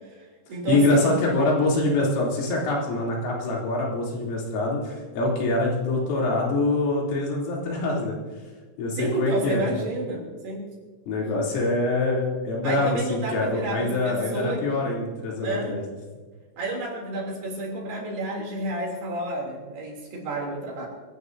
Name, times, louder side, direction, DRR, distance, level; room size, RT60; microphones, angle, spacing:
voice 1, 0.0-1.1 9.0-10.6 12.6-14.7 15.4-15.8 16.6-20.9, right 2 dB, 55° right, -1 dB, 4.9 m, -31 dB
voice 2, 0.7-8.2 8.8-9.6 11.1-15.8, left 2 dB, 75° left, -4 dB, 5.8 m, -24 dB
25.0 x 17.0 x 2.7 m, 1.4 s
omnidirectional pair, 5.9 m